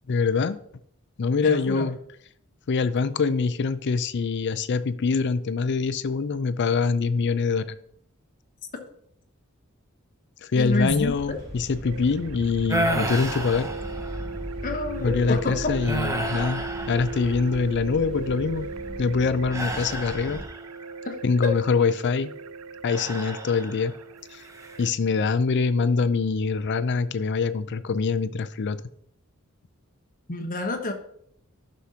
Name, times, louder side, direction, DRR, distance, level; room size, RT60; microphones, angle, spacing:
voice 1, 0.1-0.6 1.2-2.0 2.7-7.7 10.4-13.7 15.0-18.7 19.0-20.4 21.2-22.3 22.8-23.9 24.3-24.4 24.8-28.8, left 4 dB, 55° left, 14 dB, 0.5 m, -24 dB
voice 2, 1.4-1.9 10.6-11.4 14.6-15.7 21.0-21.1 30.3-30.9, left 2 dB, 40° left, 4 dB, 1.1 m, -28 dB
sound 1, 10.6-20.5, equal, 60° right, 3.2 m, -38 dB
sound 2, 11.8-24.9, right 4 dB, 75° right, 0.4 m, -38 dB
sound 3, 12.7-14.4 15.0-15.2 15.8-17.7 19.5-20.8 22.9-24.0 24.4-24.9, right 1 dB, 15° right, 0.7 m, -31 dB
11.5 x 6.3 x 2.8 m, 0.69 s
head